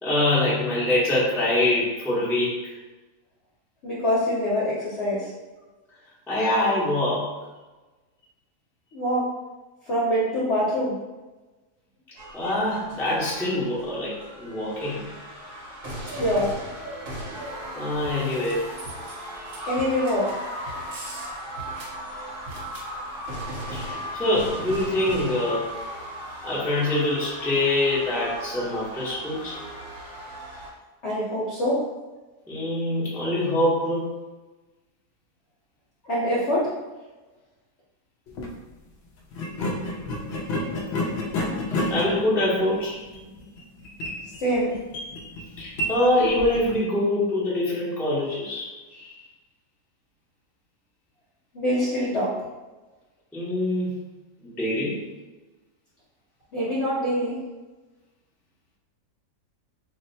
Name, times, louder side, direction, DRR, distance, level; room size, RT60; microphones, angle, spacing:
voice 1, 0.0-2.8 6.3-7.3 12.3-15.1 17.7-18.6 23.7-25.7 26.4-29.6 32.5-34.1 41.7-43.0 45.6-49.1 53.3-53.9 54.4-55.0, left 1 dB, ahead, -8 dB, 0.5 m, -24 dB
voice 2, 3.8-5.3 8.9-9.2 9.9-10.9 16.0-16.5 19.7-20.3 31.0-31.8 36.0-36.6 44.4-44.7 51.5-52.3 56.5-57.4, equal, 55° left, -9 dB, 0.9 m, -24 dB
sound 1, 12.2-30.7, equal, 55° right, 1.0 m, -36 dB
sound 2, 38.3-38.5 39.3-46.8, left 1 dB, 80° left, 0.5 m, -31 dB
2.7 x 2.1 x 3.9 m, 1.2 s
omnidirectional pair, 1.7 m